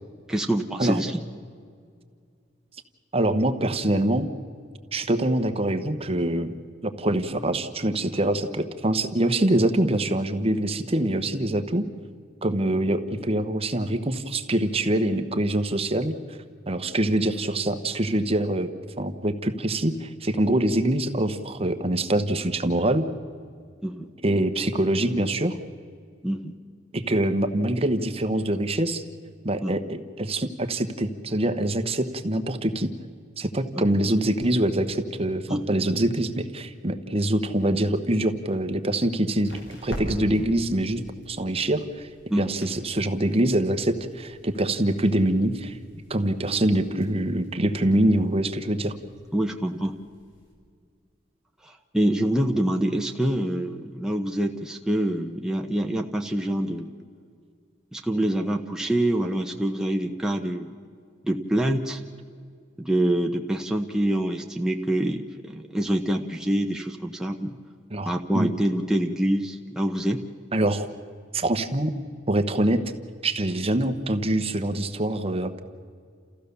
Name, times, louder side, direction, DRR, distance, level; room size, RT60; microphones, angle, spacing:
voice 1, 0.3-1.2 23.8-24.1 26.2-26.5 29.6-29.8 33.7-33.9 35.5-35.6 42.3-42.5 46.1-46.2 49.3-50.0 51.6-56.9 57.9-60.7 61.2-62.0 62.8-67.5 68.0-70.2, right 1 dB, 5° right, 1 dB, 0.8 m, -26 dB
voice 2, 3.1-4.3 4.9-6.6 6.8-11.9 12.4-16.4 16.7-23.1 24.2-25.6 26.9-29.0 29.4-32.9 33.4-41.0 41.3-42.1 42.4-45.8 46.1-48.9 67.9-68.5 70.5-70.9 71.3-71.9 72.3-72.8 73.2-75.5, right 1 dB, 30° right, 8 dB, 1.1 m, -24 dB
sound 1, 38.1-50.5, equal, 75° left, 5.4 m, -45 dB
29.5 x 15.0 x 6.8 m, 2.2 s
head